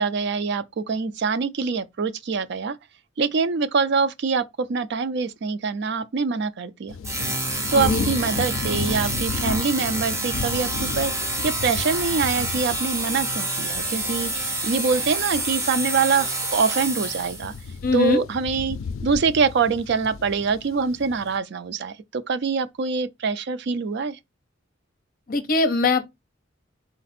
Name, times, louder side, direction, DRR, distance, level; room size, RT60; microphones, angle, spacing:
voice 1, 0.0-2.8 3.2-6.9 7.7-10.7 11.0-17.5 17.9-18.8 19.0-24.2, right 5 dB, 60° right, 0.4 m, -24 dB
sound 1, 6.9-21.4, left 5 dB, 85° left, 0.4 m, -34 dB
sound 2, 7.0-17.6, right 2 dB, 15° right, 0.9 m, -28 dB
voice 2, 7.7-8.0 17.8-18.2 25.3-26.0, left 3 dB, 45° left, 0.7 m, -21 dB
4.0 x 2.4 x 4.2 m
head